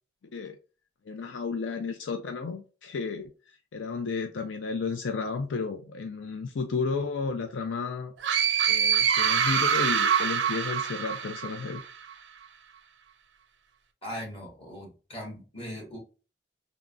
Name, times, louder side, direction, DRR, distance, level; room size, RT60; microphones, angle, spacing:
voice 1, 1.1-8.1 8.7-11.8, left 4 dB, 80° left, 5 dB, 0.4 m, -33 dB
sound 1, 8.2-11.9, right 7 dB, 75° right, 0.4 m, -25 dB
voice 2, 14.0-16.0, equal, 30° left, -2 dB, 1.5 m, -39 dB
3.5 x 2.0 x 2.3 m, 0.34 s
head